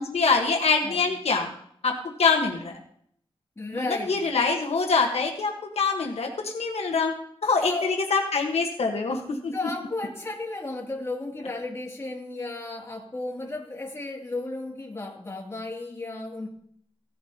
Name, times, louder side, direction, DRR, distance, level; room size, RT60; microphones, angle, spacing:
voice 1, 0.0-1.5 1.8-1.9 2.2-2.8 3.7-7.1 7.4-9.5, left 4 dB, 80° left, 2 dB, 1.3 m, -24 dB
voice 2, 3.6-4.2 7.6-7.9 9.5-16.5, left 2 dB, 25° left, -2 dB, 2.6 m, -34 dB
16.5 x 11.5 x 2.9 m, 0.67 s
wide cardioid pair, 115°, 10 cm